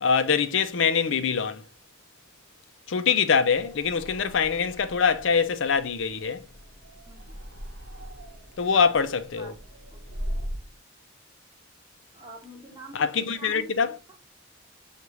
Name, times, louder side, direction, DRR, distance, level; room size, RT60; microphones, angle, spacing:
voice 1, 0.0-1.6 2.9-6.4 8.6-9.5 12.9-14.0, left 6 dB, 65° left, 0.5 m, -24 dB
sound 1, 3.4-10.8, equal, 75° right, 1.1 m, -40 dB
voice 2, 7.1-7.4 8.7-8.8 9.4-9.6 9.9-10.0 10.2-10.4 12.1-13.9, right 2 dB, 15° right, 0.8 m, -45 dB
6.8 x 2.5 x 3.1 m
head